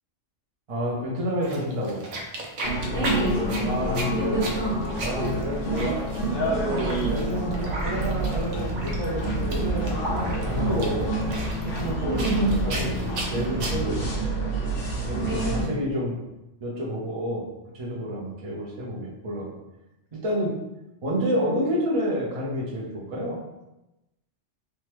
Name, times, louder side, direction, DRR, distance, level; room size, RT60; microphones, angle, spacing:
voice 1, 0.7-2.1 3.6-4.4 5.0-6.0 6.6-11.2 11.6-14.5 15.0-16.1 16.6-17.4 17.7-19.5 20.1-20.5 21.0-23.4, equal, 35° right, -4 dB, 0.6 m, -29 dB
sound 1, 1.4-13.7, right 2 dB, 80° right, 1.0 m, -35 dB
sound 2, 2.6-15.6, right 1 dB, 55° left, 0.9 m, -28 dB
voice 2, 2.9-3.7 4.1-4.9 12.1-12.6 15.2-15.7, right 1 dB, 20° left, -6 dB, 0.3 m, -27 dB
3.4 x 2.1 x 3.0 m, 0.95 s
omnidirectional pair, 1.2 m